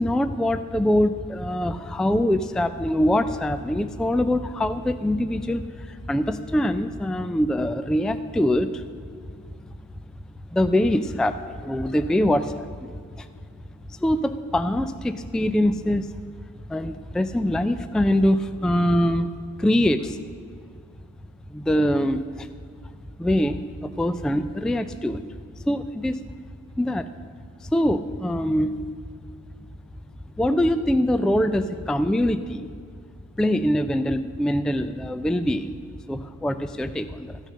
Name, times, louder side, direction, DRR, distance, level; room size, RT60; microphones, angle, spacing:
voice 1, 0.0-8.9 10.5-13.3 13.9-16.1 16.7-19.3 19.6-20.2 21.5-22.5 23.2-25.3 25.6-26.2 26.8-27.1 27.6-28.8 30.4-32.7 33.4-35.7 36.1-37.4, left 1 dB, ahead, 11 dB, 0.4 m, -23 dB
13.5 x 6.5 x 6.4 m, 2.2 s
cardioid pair, 90°, 30 cm